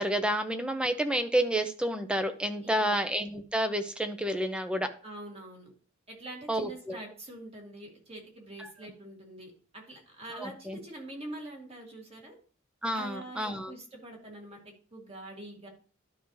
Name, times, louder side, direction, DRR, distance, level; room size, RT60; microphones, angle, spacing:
voice 1, 0.0-4.9 6.5-7.0 8.6-8.7 10.4-10.8 12.8-13.7, right 1 dB, 5° right, 8 dB, 0.7 m, -30 dB
voice 2, 2.6-3.0 5.0-5.7 6.1-12.4 12.9-15.7, right 1 dB, 30° right, 0 dB, 2.3 m, -44 dB
11.5 x 5.3 x 3.2 m, 0.41 s
head